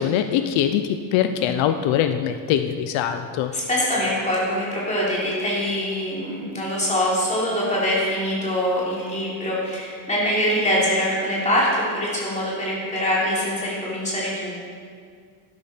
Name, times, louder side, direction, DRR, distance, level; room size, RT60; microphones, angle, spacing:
voice 1, 0.0-3.5, left 9 dB, 80° left, 8 dB, 0.7 m, -22 dB
voice 2, 3.5-14.7, equal, 15° left, -6 dB, 3.2 m, -24 dB
12.0 x 11.5 x 4.4 m, 2.1 s
cardioid pair, 170°, 46 cm